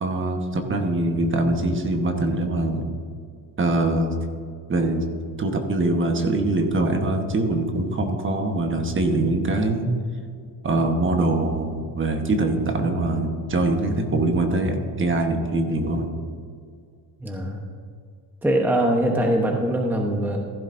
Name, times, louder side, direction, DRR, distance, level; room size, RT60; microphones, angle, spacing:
voice 1, 0.0-2.9 3.6-4.1 4.7-5.0 5.4-9.9 10.6-16.1, right 2 dB, 25° right, 4 dB, 1.2 m, -23 dB
voice 2, 17.2-17.6 18.4-20.4, right 1 dB, 5° right, 1 dB, 0.9 m, -22 dB
15.5 x 11.5 x 2.6 m, 2.2 s
cardioid pair, 140°, 44 cm